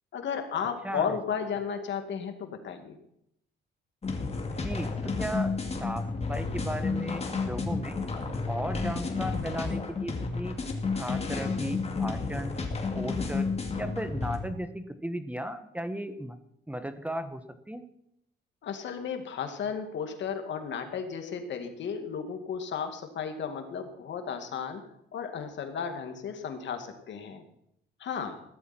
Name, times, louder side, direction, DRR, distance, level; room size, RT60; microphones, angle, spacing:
voice 1, 0.1-3.0 18.6-24.8 25.1-27.4 28.0-28.4, left 7 dB, 65° left, 6 dB, 2.3 m, -34 dB
voice 2, 0.8-1.2 4.5-8.0 8.5-10.5 10.9-12.5 12.9-13.5 13.8-16.4 16.7-17.8, equal, 5° right, 10 dB, 1.2 m, -36 dB
sound 1, 4.0-14.4, left 4 dB, 30° left, 2.6 m, -31 dB
16.0 x 13.0 x 4.5 m, 0.76 s
cardioid pair, 90°, 20 cm